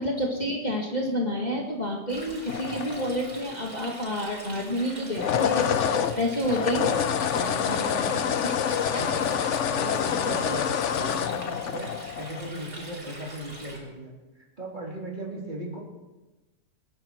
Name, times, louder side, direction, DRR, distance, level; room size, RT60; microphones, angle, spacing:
voice 1, 0.0-6.9 8.9-9.0, equal, 25° left, -1 dB, 2.1 m, -29 dB
Stream, 2.1-13.8, right 1 dB, 90° right, 5.2 m, -43 dB
sound 1, 2.5-3.5 5.0-12.5, left 8 dB, 55° left, 0.9 m, -27 dB
voice 2, 6.7-8.4 8.9-14.1 14.4-15.8, right 1 dB, 30° right, -3 dB, 3.6 m, -37 dB
26.5 x 10.5 x 4.6 m, 1.1 s
omnidirectional pair, 1.7 m